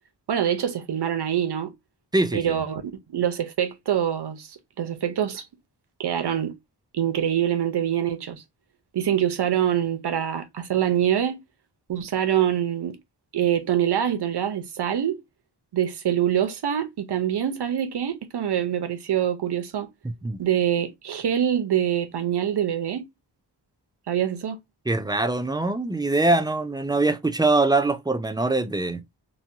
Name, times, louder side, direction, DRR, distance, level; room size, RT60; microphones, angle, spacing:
voice 1, 0.3-1.7 2.3-5.4 6.0-6.6 6.9-8.4 8.9-11.4 11.9-13.0 13.3-15.2 15.7-19.9 20.4-23.1 24.1-24.6, right 10 dB, 65° right, 0.8 m, -25 dB
voice 2, 2.1-2.5 20.0-20.4 24.9-29.0, right 2 dB, 10° right, 0.4 m, -23 dB
3.1 x 2.2 x 2.6 m
cardioid pair, 70°, 43 cm